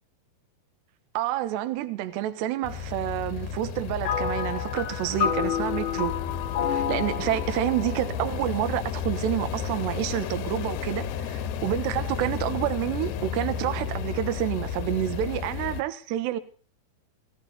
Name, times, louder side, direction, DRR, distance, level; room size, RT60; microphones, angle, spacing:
voice 1, 1.1-6.1 6.7-16.4, right 13 dB, 70° right, 3.1 m, -29 dB
sound 1, 2.6-15.8, left 8 dB, 75° left, 2.7 m, -33 dB
sound 2, 4.0-9.6, left 8 dB, 55° left, 2.4 m, -30 dB
19.0 x 16.5 x 4.2 m
omnidirectional pair, 5.6 m